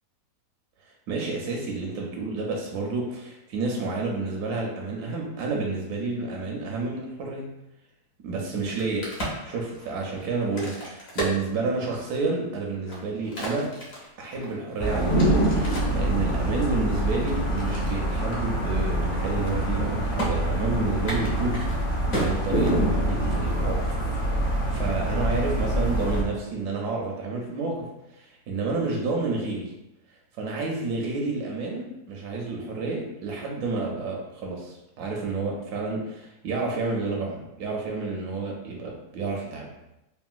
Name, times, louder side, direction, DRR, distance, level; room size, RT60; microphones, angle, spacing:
voice 1, 1.1-7.5 8.2-9.0 9.4-13.8 14.2-23.9 24.7-29.7 30.4-39.7, right 3 dB, 80° right, -1 dB, 1.1 m, -30 dB
Crack, 8.6-12.2 12.7-16.0 16.6-18.0 18.3-18.4 18.7-19.0 19.3-19.8 20.2-20.3 21.0-23.2, right 1 dB, 65° left, 1.2 m, -34 dB
sound 1, 14.8-26.2, right 1 dB, 50° left, 0.7 m, -25 dB
3.7 x 2.1 x 2.4 m, 0.90 s
omnidirectional pair, 1.7 m